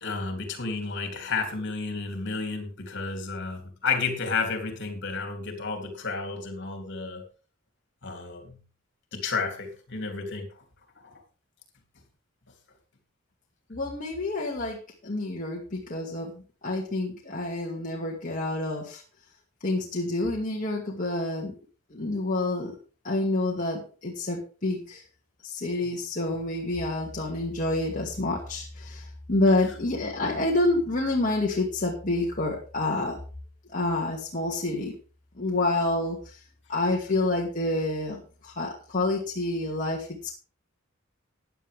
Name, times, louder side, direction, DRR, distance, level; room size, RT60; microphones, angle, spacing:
voice 1, 0.0-7.2 8.0-8.6 9.1-10.5 25.8-25.9, left 4 dB, 60° left, 4 dB, 3.4 m, -31 dB
voice 2, 13.7-19.0 19.6-21.5 21.9-22.7 23.0-25.0 25.4-33.2 33.7-34.9 35.4-36.4 36.7-40.1, left 2 dB, 40° left, -2 dB, 2.3 m, -28 dB
15.0 x 10.0 x 3.6 m, 0.36 s
head